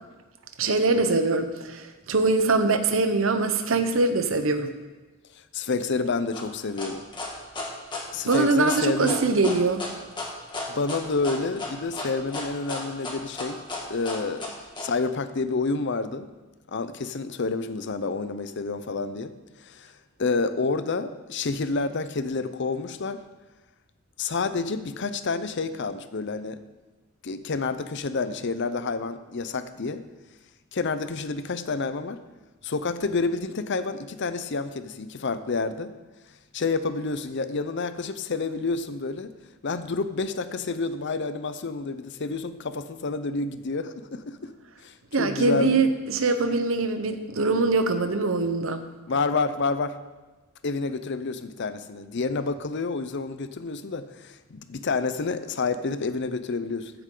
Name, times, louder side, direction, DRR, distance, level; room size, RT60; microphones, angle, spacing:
voice 1, 0.6-4.7 8.3-9.8 45.1-48.8, right 3 dB, 70° right, 8 dB, 0.9 m, -23 dB
voice 2, 5.5-7.0 8.1-9.2 10.7-13.6 13.9-14.5 14.8-16.3 16.7-19.3 19.6-19.9 20.2-23.2 24.2-26.6 27.2-30.0 30.7-32.2 32.6-35.9 36.5-39.3 39.6-44.5 44.8-45.8 49.1-50.0 50.6-56.9, left 4 dB, 60° left, 12 dB, 0.7 m, -29 dB
sound 1, 6.3-14.9, left 2 dB, 20° left, 2.0 m, -34 dB
15.0 x 7.9 x 3.9 m, 1.2 s
head